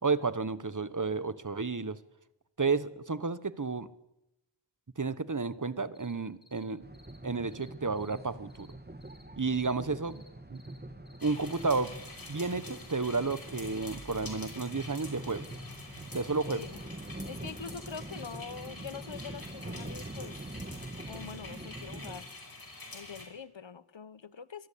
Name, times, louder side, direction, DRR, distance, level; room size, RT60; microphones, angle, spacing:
voice 1, 0.0-2.0 2.6-3.9 5.0-6.8 7.2-8.7 9.4-10.2 10.5-10.6 11.2-12.0 12.3-15.4 16.1-16.6, right 4 dB, 40° right, 15 dB, 1.3 m, -31 dB
sound 1, 5.9-6.1 6.4-6.6 6.9-7.2 7.5-7.7 8.0-8.2 8.5-8.7 9.0-9.2 9.5-9.7 10.1-10.3 10.5-10.8 11.0-11.6 12.0-12.2 12.7-12.9 13.2-13.4 13.7-14.0 14.3-14.5 14.8-15.0 15.4-15.7 16.1-16.3 16.6-16.8 17.1-17.3 17.6-17.8 18.1-18.3 18.6-19.1 19.4-19.6 19.9-20.6 21.0-21.2 21.6-21.8 22.1-22.4 22.6-22.8 23.1-23.2, left 2 dB, 10° left, 4.6 m, -59 dB
sound 2, 6.8-22.2, right 1 dB, 20° right, 1.9 m, -44 dB
sound 3, 11.2-23.3, left 2 dB, 50° left, 5.3 m, -47 dB
voice 2, 16.4-16.8 17.2-20.6 21.0-22.3 22.9-24.7, left 6 dB, 75° left, 17 dB, 1.1 m, -44 dB
25.0 x 18.5 x 8.6 m, 0.88 s
wide cardioid pair, 60°, 46 cm